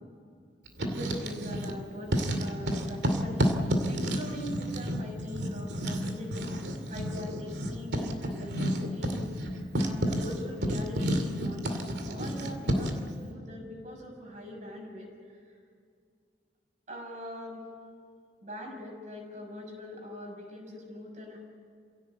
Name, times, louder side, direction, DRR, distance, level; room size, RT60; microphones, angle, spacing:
Writing, 0.7-1.8 2.1-13.1, equal, 70° right, 2.5 m, -31 dB
voice 1, 0.8-15.1 16.9-17.6 18.4-21.4, left 1 dB, 40° right, 1 dB, 6.6 m, -42 dB
27.5 x 17.0 x 8.3 m, 2.2 s
head